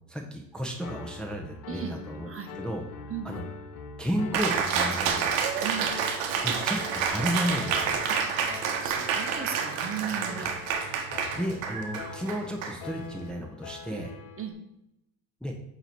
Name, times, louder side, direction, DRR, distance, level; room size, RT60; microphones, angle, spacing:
voice 1, 0.1-2.8 3.2-3.4 4.0-5.3 6.4-8.0 10.4-10.5 11.3-14.1 15.4-15.6, equal, ahead, 0 dB, 0.8 m, -33 dB
Piano, 0.8-14.5, left 6 dB, 70° left, 0.8 m, -44 dB
voice 2, 1.7-2.0 2.2-2.5 3.1-3.3 5.6-5.9 8.1-8.2 8.8-10.5 13.9-14.5, right 7 dB, 30° right, 5 dB, 0.9 m, -36 dB
Cheering, 4.3-13.3, right 6 dB, 75° right, 1.0 m, -29 dB
7.8 x 3.1 x 4.1 m, 0.83 s
hypercardioid pair, 75°, 42 cm